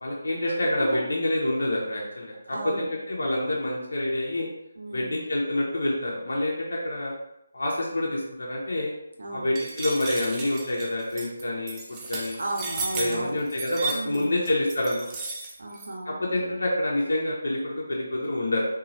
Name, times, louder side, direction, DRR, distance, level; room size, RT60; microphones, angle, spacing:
voice 1, 0.0-4.5 4.9-7.1 7.5-8.9 9.3-12.4 13.0-15.1 16.1-18.6, left 1 dB, 70° left, -3 dB, 0.7 m, -27 dB
voice 2, 2.5-2.9 4.8-5.2 9.2-9.5 12.4-13.4 13.9-14.4 15.6-16.6, right 1 dB, 70° right, -1 dB, 0.8 m, -34 dB
sound 1, 9.6-15.9, right 3 dB, 20° right, 0.5 m, -34 dB
3.0 x 2.3 x 2.6 m, 0.84 s
figure-of-eight pair, 155°, 0 cm